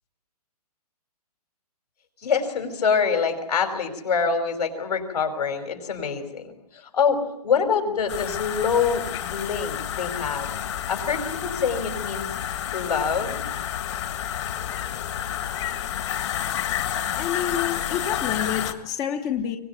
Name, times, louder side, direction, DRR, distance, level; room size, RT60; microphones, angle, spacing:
voice 1, 2.2-10.5 10.9-12.3 12.7-13.4, left 6 dB, 75° left, 6 dB, 5.3 m, -25 dB
sound 1, 8.1-18.7, left 10 dB, 45° left, 2.0 m, -30 dB
voice 2, 17.2-19.6, left 9 dB, 15° left, 8 dB, 1.0 m, -28 dB
24.0 x 19.5 x 9.5 m, 0.78 s
hypercardioid pair, 165°, 20 cm